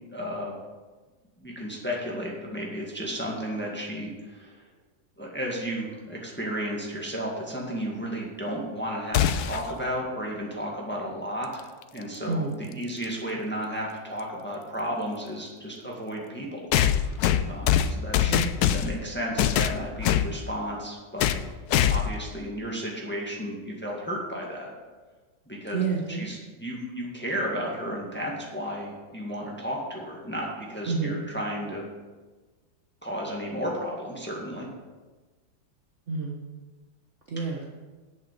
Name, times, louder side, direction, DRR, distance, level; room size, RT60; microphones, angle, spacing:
voice 1, 0.1-0.6 1.4-4.6 5.2-11.7 11.9-18.3 18.7-21.3 21.9-24.7 25.5-25.8 26.1-31.9 33.0-34.7, equal, 5° left, -2 dB, 1.6 m, -33 dB
sound 1, 9.1-9.7 11.8-11.9 13.0-13.1 16.7-19.0 19.4-20.3 21.2-21.5 21.7-22.2, left 10 dB, 80° left, 0.8 m, -23 dB
voice 2, 12.3-12.6 18.3-18.5 25.7-26.3 30.8-31.2 36.1-36.4 37.3-37.7, right 4 dB, 45° right, -2 dB, 1.2 m, -29 dB
8.3 x 7.3 x 6.7 m, 1.3 s
omnidirectional pair, 2.2 m